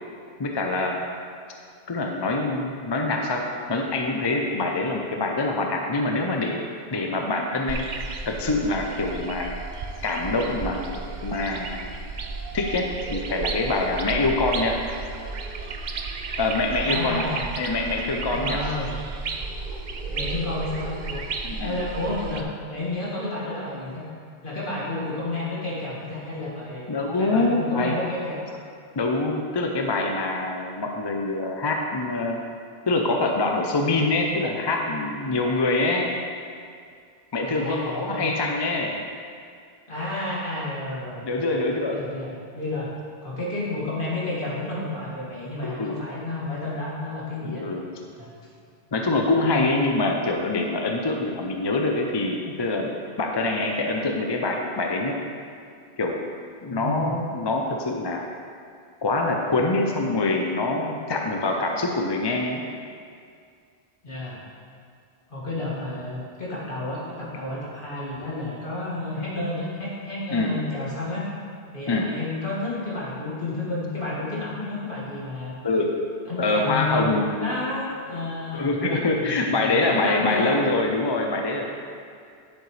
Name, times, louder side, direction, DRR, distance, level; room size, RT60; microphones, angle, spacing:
voice 1, 0.4-1.0 1.9-3.4 3.7-6.6 6.9-7.9 8.2-9.5 10.0-11.8 12.5-14.8 16.4-17.2 17.6-18.7 21.4-21.8 26.9-28.0 29.0-32.4 32.9-36.1 37.3-39.0 41.2-42.0 45.6-46.0 47.4-47.9 48.9-52.9 53.2-55.2 56.0-56.2 56.6-58.2 59.0-62.6 70.3-70.5 71.9-72.1 75.6-75.9 76.4-77.6 78.1-78.2 78.5-81.7, left 2 dB, 30° left, 1 dB, 0.5 m, -25 dB
sound 1, 7.7-22.4, right 4 dB, 55° right, 0.6 m, -33 dB
voice 2, 16.8-17.5 18.3-19.0 20.1-21.2 21.6-24.0 24.4-26.9 27.2-28.4 37.4-38.3 39.9-41.6 41.9-42.9 43.2-47.6 48.2-48.3 49.4-49.6 56.7-57.2 64.0-64.4 65.3-71.3 71.7-75.6 76.3-78.7 79.2-80.6, left 2 dB, 55° left, -7 dB, 2.3 m, -31 dB
9.5 x 8.1 x 3.3 m, 2.3 s
omnidirectional pair, 1.1 m